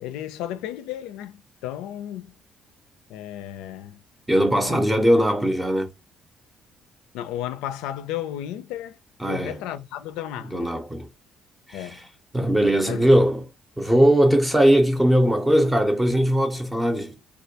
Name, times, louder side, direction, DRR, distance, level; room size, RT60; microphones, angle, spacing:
voice 1, 0.0-2.3 3.1-4.0 4.7-4.8 7.1-9.0 9.3-10.8 11.7-12.0 12.9-13.1, left 11 dB, 90° left, 0.3 m, -33 dB
voice 2, 4.3-5.9 9.2-9.6 10.4-11.1 11.7-11.9 12.3-13.4 13.8-17.2, right 1 dB, 10° right, 0.6 m, -20 dB
2.2 x 2.2 x 2.7 m
supercardioid pair, 75°, 0 cm